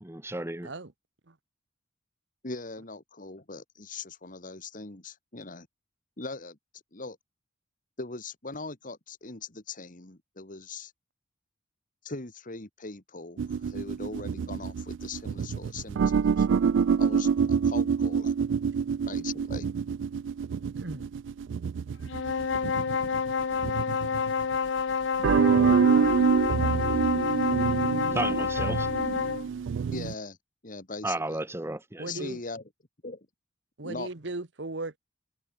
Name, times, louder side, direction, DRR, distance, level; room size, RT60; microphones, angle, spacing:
voice 1, 0.0-0.7 28.1-28.9 31.0-32.3, right 2 dB, 15° right, 1.1 m, -33 dB
voice 2, 2.4-5.7 6.2-6.6 6.9-7.2 8.0-10.9 12.0-16.5 17.0-18.3 19.1-19.7 29.9-30.4 30.6-31.4 32.1-32.6 33.0-33.3 33.8-34.1, left 3 dB, 45° left, 2.3 m, -40 dB
sound 1, 13.4-24.6 25.2-30.1, right 6 dB, 85° right, 0.3 m, -26 dB
voice 3, 20.8-21.1 28.2-28.5 32.0-32.4 33.8-35.0, right 2 dB, 70° right, 1.4 m, -37 dB
sound 2, 22.0-29.5, left 5 dB, 85° left, 0.6 m, -29 dB
head